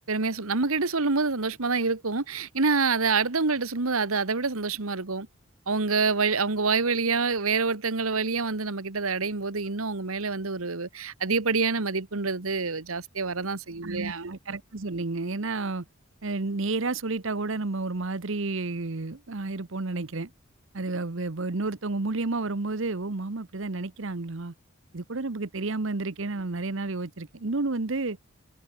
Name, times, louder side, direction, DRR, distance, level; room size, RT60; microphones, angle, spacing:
voice 1, 0.1-5.3 5.7-14.3, right 4 dB, 85° right, 1.5 m, -27 dB
voice 2, 13.8-15.8 16.2-20.3 20.7-24.5 24.9-28.2, right 3 dB, 65° right, 1.0 m, -31 dB
head